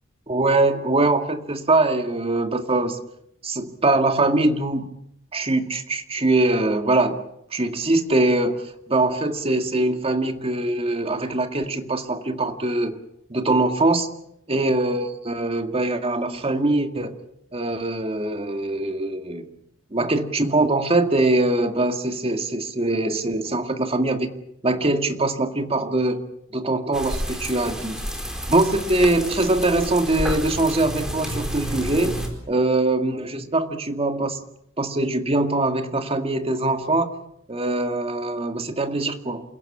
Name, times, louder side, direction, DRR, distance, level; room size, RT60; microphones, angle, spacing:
voice 1, 0.3-3.0 3.4-4.9 5.3-7.2 7.5-13.0 13.3-14.1 14.5-17.2 17.5-19.5 19.9-24.3 24.6-26.2 26.5-28.0 28.5-32.1 32.5-34.4 34.8-37.2 37.5-39.4, right 2 dB, 30° right, 7 dB, 2.1 m, -22 dB
sound 1, 26.9-32.3, equal, 5° right, 4.4 m, -30 dB
28.5 x 16.5 x 8.8 m, 0.75 s
head